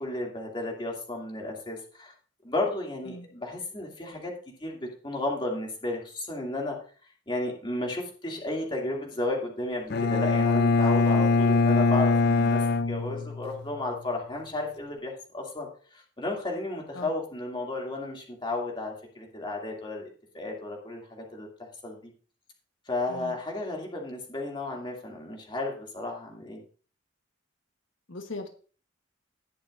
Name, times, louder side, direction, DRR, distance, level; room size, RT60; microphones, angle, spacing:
voice 1, 0.0-2.1 2.4-4.3 4.6-6.8 7.3-20.1 20.3-22.1 22.9-26.6, left 2 dB, 25° left, -1 dB, 2.5 m, -33 dB
Bowed string instrument, 9.9-13.8, left 3 dB, 60° left, 0.5 m, -23 dB
voice 2, 28.1-28.5, left 2 dB, 90° left, 5 dB, 1.2 m, -39 dB
19.5 x 6.7 x 2.6 m, 0.41 s
head